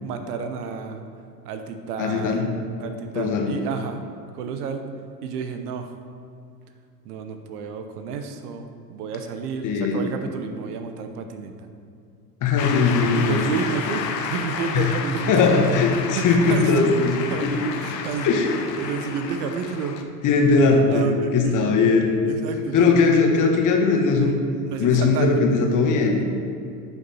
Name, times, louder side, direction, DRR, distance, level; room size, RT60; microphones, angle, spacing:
voice 1, 0.0-1.0 1.4-2.4 2.8-4.0 4.3-4.9 5.2-5.9 7.0-11.7 13.1-15.5 16.2-16.9 17.3-17.5 17.8-18.4 18.8-20.0 20.9-21.8 22.2-22.9 24.7-25.4, right 5 dB, 65° right, 7 dB, 1.0 m, -30 dB
voice 2, 2.0-2.5 3.1-3.5 9.6-10.0 12.4-13.4 14.7-15.0 15.3-17.6 18.2-18.5 20.2-21.1 21.3-22.2 22.7-24.4 24.8-26.2, left 4 dB, 40° left, 2 dB, 1.5 m, -19 dB
Shout / Cheering / Applause, 12.6-20.0, left 6 dB, 80° left, 0.9 m, -31 dB
10.5 x 5.7 x 4.3 m, 2.5 s
hypercardioid pair, 90°, 49 cm